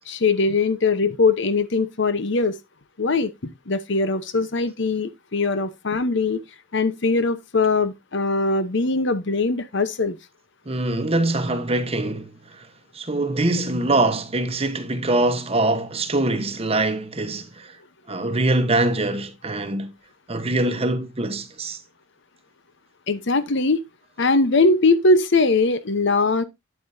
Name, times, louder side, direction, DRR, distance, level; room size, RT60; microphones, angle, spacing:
voice 1, 0.1-2.6 3.0-3.3 3.7-6.4 6.7-10.2 23.1-23.8 24.2-26.4, left 3 dB, 60° left, 0.9 m, -21 dB
voice 2, 10.7-12.7 12.9-17.7 18.1-19.9 20.3-21.8, right 2 dB, 30° right, 1.0 m, -23 dB
8.8 x 8.3 x 2.7 m
head